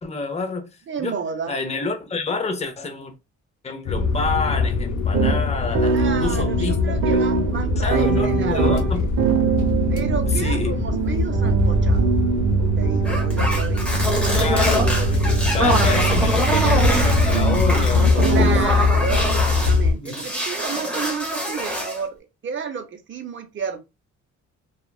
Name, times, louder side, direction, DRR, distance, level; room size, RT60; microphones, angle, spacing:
voice 1, 0.0-1.2 1.5-3.1 3.6-6.8 7.1-7.3 7.8-9.1 10.4-10.7 13.9-18.6 19.9-20.3, left 3 dB, 20° left, 0.7 m, -28 dB
voice 2, 0.9-1.6 5.8-9.1 9.9-12.1 12.8-13.8 18.3-23.8, right 6 dB, 40° right, 0.7 m, -31 dB
sound 1, 3.9-19.9, left 4 dB, 80° left, 0.7 m, -22 dB
sound 2, 5.1-18.7, right 7 dB, 75° right, 0.7 m, -24 dB
sound 3, 13.0-19.8 20.1-22.0, equal, 5° left, 1.0 m, -24 dB
2.8 x 2.3 x 2.3 m
cardioid pair, 90°, 30 cm